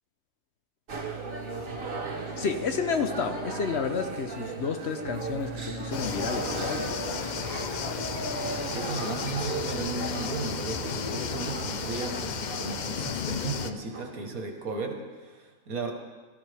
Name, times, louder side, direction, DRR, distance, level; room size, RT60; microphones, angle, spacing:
sound 1, 0.9-14.2, right 3 dB, 70° right, 1.9 m, -36 dB
voice 1, 2.4-7.3, left 5 dB, 55° left, 7 dB, 1.0 m, -31 dB
sound 2, 5.9-13.7, left 7 dB, 85° left, 0.4 m, -34 dB
voice 2, 8.4-15.9, right 3 dB, 85° right, 4 dB, 1.9 m, -35 dB
17.5 x 13.5 x 3.5 m, 1.4 s
omnidirectional pair, 1.5 m